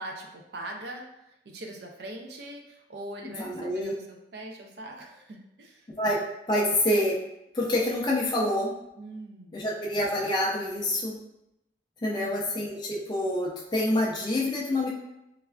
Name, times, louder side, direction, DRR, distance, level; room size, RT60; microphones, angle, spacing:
voice 1, 0.0-5.9 9.0-9.6 12.1-12.4, right 1 dB, 60° right, 2 dB, 0.4 m, -42 dB
voice 2, 3.4-3.9 6.0-7.2 7.5-8.8 9.5-11.1 12.0-14.9, left 1 dB, 25° left, -4 dB, 0.4 m, -27 dB
3.2 x 2.4 x 2.2 m, 0.89 s
head